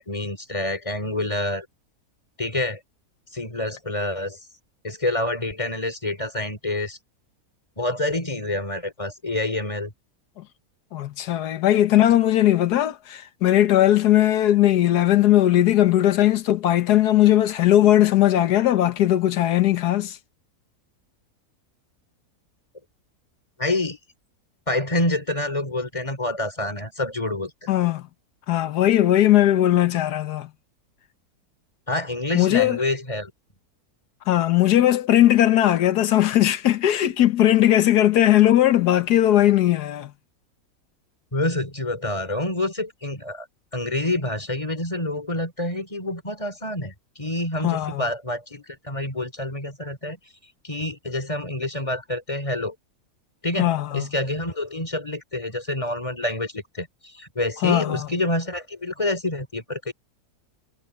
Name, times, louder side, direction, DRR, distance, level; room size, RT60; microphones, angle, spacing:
voice 1, 0.0-1.7 2.4-2.8 3.3-4.4 4.8-7.0 7.8-9.9 23.6-24.0 24.7-27.7 31.9-33.3 41.3-43.5 43.7-50.2 50.6-52.7 53.4-59.9, left 1 dB, 20° left, 3.8 m, -27 dB
voice 2, 10.9-20.2 27.7-28.0 28.5-30.5 32.3-32.8 34.3-40.1 47.6-48.0 53.6-54.1 57.6-58.1, left 13 dB, 80° left, 1.5 m, -18 dB
omnidirectional pair, 1.7 m